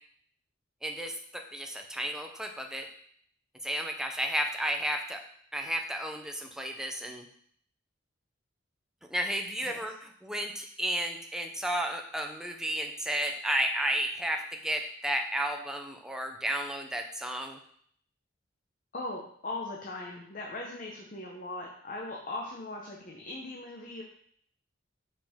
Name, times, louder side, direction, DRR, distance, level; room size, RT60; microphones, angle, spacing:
voice 1, 0.8-2.9 3.6-5.2 5.5-7.3 9.1-17.6, right 1 dB, 5° right, 3 dB, 0.5 m, -32 dB
voice 2, 18.9-24.0, left 2 dB, 45° left, 0 dB, 0.7 m, -39 dB
5.4 x 5.0 x 3.5 m, 0.63 s
head